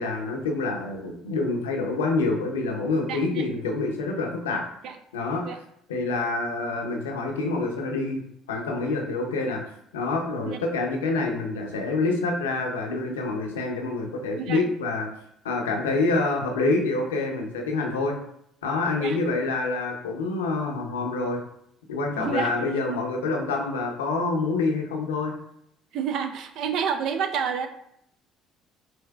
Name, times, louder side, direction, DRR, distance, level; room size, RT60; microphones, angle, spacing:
voice 1, 0.0-4.6 5.1-5.6 5.9-8.2 8.5-9.6 9.9-15.1 15.4-18.1 18.6-21.4 21.9-25.3, left 3 dB, 90° left, 2 dB, 0.6 m, -27 dB
voice 2, 3.1-3.4 4.8-5.0 5.4-5.6 10.4-10.6 14.4-14.6 19.0-19.2 22.2-22.5 25.9-27.7, right 7 dB, 65° right, 7 dB, 0.4 m, -29 dB
5.2 x 2.6 x 2.3 m, 0.73 s
hypercardioid pair, 60°, 0 cm